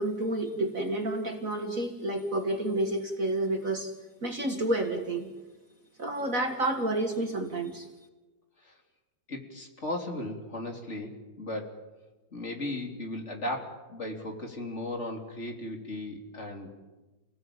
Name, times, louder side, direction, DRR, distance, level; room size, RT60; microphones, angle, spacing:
voice 1, 0.0-3.9 4.2-5.3 6.0-7.9, right 1 dB, 45° right, 4 dB, 2.3 m, -30 dB
voice 2, 9.3-11.7 12.3-16.8, left 1 dB, 35° left, 3 dB, 3.8 m, -36 dB
29.5 x 19.0 x 8.8 m, 1.2 s
omnidirectional pair, 2.1 m